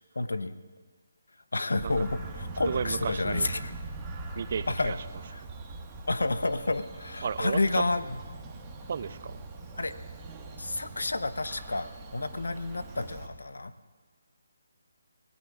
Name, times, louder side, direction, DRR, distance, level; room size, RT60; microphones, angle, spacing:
voice 1, 0.1-0.5 1.5-3.7 4.7-5.0 5.3-5.4 6.1-8.2 9.7-9.9 10.6-13.7, left 2 dB, 80° left, 12 dB, 0.8 m, -30 dB
Bird vocalization bird call bird song, 1.7-13.3, right 2 dB, 15° right, 1.6 m, -41 dB
voice 2, 2.7-3.5 4.4-5.0 7.2-7.6 8.9-9.4, right 6 dB, 50° right, 15 dB, 0.5 m, -33 dB
25.5 x 17.5 x 2.5 m, 1.4 s
figure-of-eight pair, 155°, 0 cm